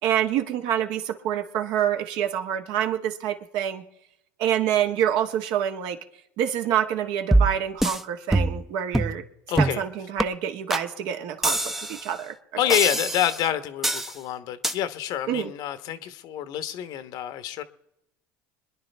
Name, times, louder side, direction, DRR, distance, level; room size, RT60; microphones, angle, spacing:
voice 1, 0.0-3.8 4.4-6.0 6.4-9.2 9.6-12.4 15.3-15.5, right 10 dB, 65° right, 1.6 m, -27 dB
sound 1, 7.3-8.0 8.3-8.7 8.9-9.2 9.6-9.8 10.2-10.3 10.7-10.9 11.4-12.1 12.7-13.4 13.8-14.1 14.6-14.7, right 1 dB, 5° right, 0.7 m, -23 dB
voice 2, 9.5-9.8 12.6-17.6, left 11 dB, 60° left, 1.1 m, -27 dB
26.0 x 10.5 x 3.4 m
supercardioid pair, 95°, 8 cm